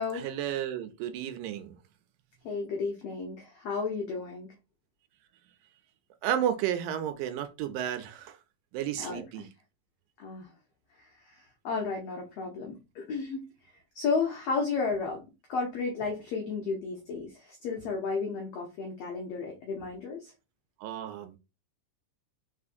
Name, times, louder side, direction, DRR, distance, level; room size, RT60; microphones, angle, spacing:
voice 1, 0.1-1.7 6.2-8.4 8.7-9.5 20.8-21.4, right 10 dB, 80° right, 2.1 m, -32 dB
voice 2, 2.4-4.5 9.0-9.5 10.2-10.5 11.2-13.5 13.9-15.2 15.5-20.3, left 4 dB, 80° left, 1.4 m, -33 dB
4.6 x 4.1 x 2.5 m
omnidirectional pair, 3.9 m